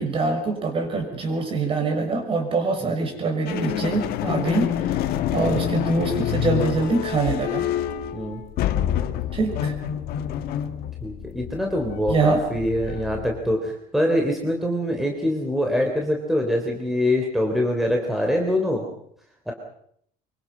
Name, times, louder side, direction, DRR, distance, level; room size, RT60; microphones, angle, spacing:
voice 1, 0.0-4.9 5.3-7.7 9.3-9.7 12.1-12.4, right 3 dB, 35° right, 4 dB, 5.9 m, -24 dB
sound 1, 3.5-13.6, left 10 dB, 70° left, 1.9 m, -27 dB
voice 2, 11.0-18.8 19.5-19.6, left 1 dB, ahead, 1 dB, 3.4 m, -24 dB
24.5 x 24.0 x 5.7 m, 0.67 s
cardioid pair, 145°, 16 cm